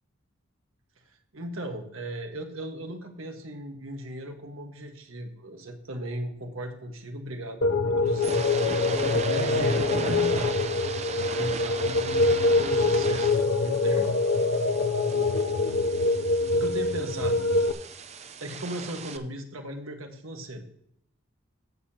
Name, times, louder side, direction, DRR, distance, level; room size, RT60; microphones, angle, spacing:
voice 1, 1.3-7.6 8.0-8.4 8.9-10.6 11.1-14.2 15.1-15.8 16.5-17.4 18.4-20.6, right 1 dB, 80° right, 4 dB, 1.5 m, -37 dB
sound 1, 7.6-17.7, left 3 dB, 65° left, 0.6 m, -24 dB
sound 2, 8.1-19.2, right 4 dB, 30° right, 0.6 m, -37 dB
15.0 x 6.8 x 2.9 m, 0.71 s
head